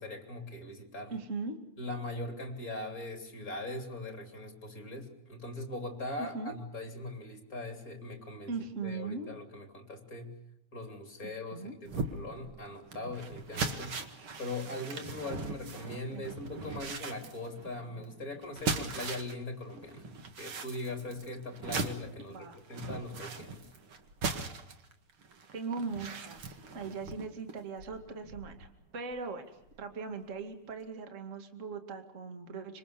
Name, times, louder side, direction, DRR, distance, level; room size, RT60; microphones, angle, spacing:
voice 1, 0.0-1.1 1.8-8.5 8.8-10.3 10.7-14.0 14.4-20.1 20.4-23.6, left 2 dB, 20° left, 4 dB, 3.1 m, -41 dB
voice 2, 1.1-1.6 6.3-6.5 8.5-9.3 11.2-11.7 16.1-16.2 22.3-22.6 25.5-29.4 29.8-32.8, right 4 dB, 30° right, 6 dB, 1.6 m, -39 dB
sound 1, 11.9-19.4 19.7-28.7 29.1-29.3 29.7-29.8, right 4 dB, 50° right, 1.7 m, -39 dB
26.0 x 25.5 x 7.0 m, 0.81 s
omnidirectional pair, 4.8 m